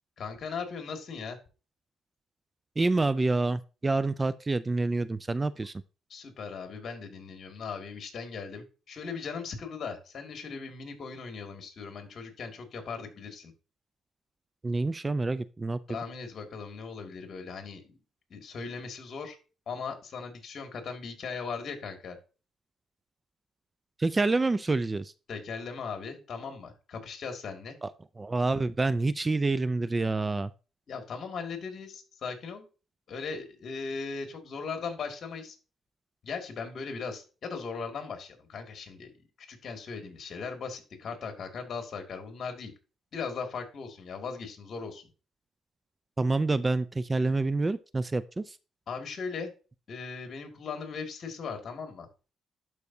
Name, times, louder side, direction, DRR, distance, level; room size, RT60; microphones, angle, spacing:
voice 1, 0.2-1.4 6.1-13.5 15.9-17.9 18.3-19.4 19.7-22.2 25.3-27.8 30.9-32.7 33.1-35.6 36.2-39.1 39.4-42.7 43.1-45.1 48.9-49.5 49.9-52.1, left 5 dB, 55° left, 5 dB, 2.1 m, -38 dB
voice 2, 2.8-5.7 14.6-15.8 24.0-25.1 27.8-27.9 28.2-30.5 46.2-48.6, right 3 dB, 25° right, 16 dB, 0.3 m, -27 dB
11.5 x 4.7 x 2.7 m, 0.33 s
cardioid pair, 90°, 0 cm